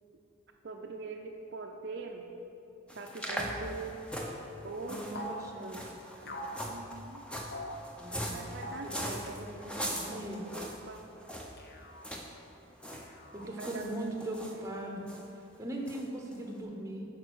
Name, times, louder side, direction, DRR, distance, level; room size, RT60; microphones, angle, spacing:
voice 1, 0.6-2.3 2.9-4.1 4.6-7.3 8.3-11.0 13.6-14.6, right 3 dB, 55° right, 2 dB, 0.5 m, -44 dB
sound 1, 2.9-11.6 12.0-12.3 12.5-13.1 13.3-14.5 15.1-15.2 15.9-16.0 16.3-16.4, equal, 5° left, 0.6 m, -40 dB
voice 2, 4.8-5.8 8.0-10.4 13.3-15.1 15.6-17.1, right 1 dB, 15° right, 0 dB, 0.9 m, -40 dB
sound 2, 5.1-5.5 6.3-6.6 7.5-7.8 8.6-8.9 9.8-10.2 11.6-12.1 12.9-13.6, equal, 45° left, 0.7 m, -43 dB
9.0 x 4.8 x 6.2 m, 2.8 s
head